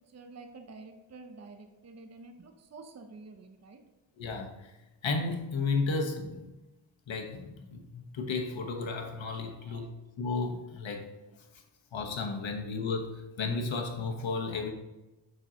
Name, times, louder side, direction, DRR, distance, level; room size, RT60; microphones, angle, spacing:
voice 1, 0.0-3.8 9.4-9.9 12.4-12.5, right 3 dB, 35° right, 6 dB, 0.6 m, -49 dB
voice 2, 4.2-4.7 5.0-6.5 7.1-9.9 10.2-11.0 11.9-14.7, left 4 dB, 90° left, 2 dB, 1.1 m, -33 dB
7.5 x 5.5 x 2.8 m, 1.1 s
wide cardioid pair, 130°, 45 cm